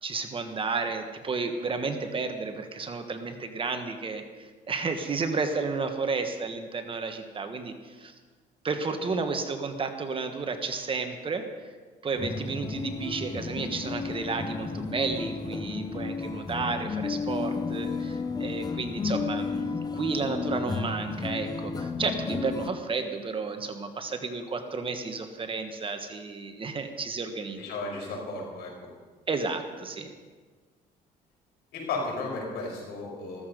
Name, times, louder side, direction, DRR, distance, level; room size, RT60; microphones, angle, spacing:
voice 1, 0.0-8.1 8.6-11.7 12.0-27.7 29.3-30.1, right 4 dB, 30° right, 6 dB, 1.4 m, -32 dB
sound 1, 12.1-22.7, left 4 dB, 25° left, 0.8 m, -32 dB
voice 2, 27.5-28.7 31.7-33.5, left 3 dB, 80° left, -1 dB, 6.0 m, -34 dB
15.0 x 14.0 x 5.2 m, 1.5 s
cardioid pair, 110°, 17 cm